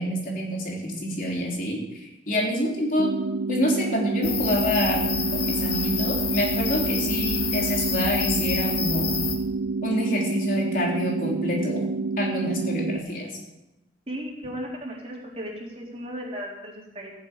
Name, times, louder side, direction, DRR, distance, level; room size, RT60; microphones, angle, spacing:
voice 1, 0.0-3.1 3.5-9.1 9.8-11.9 12.2-13.4, equal, 45° left, -1 dB, 3.6 m, -27 dB
sound 1, 3.0-13.0, right 3 dB, 85° right, 0.5 m, -28 dB
sound 2, 4.2-9.4, left 6 dB, 75° left, 2.4 m, -28 dB
voice 2, 14.1-17.2, equal, 35° right, -2 dB, 3.8 m, -36 dB
16.0 x 8.1 x 9.0 m, 0.95 s
head